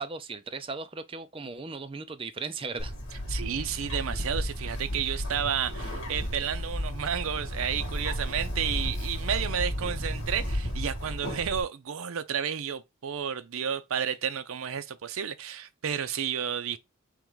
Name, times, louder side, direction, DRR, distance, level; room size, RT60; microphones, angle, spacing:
voice 1, 0.0-3.0, right 4 dB, 25° right, 0.4 m, -37 dB
Bird, 2.8-11.6, equal, 60° left, 1.7 m, -33 dB
voice 2, 3.3-16.8, right 8 dB, 70° right, 0.5 m, -31 dB
3.7 x 3.0 x 4.7 m
head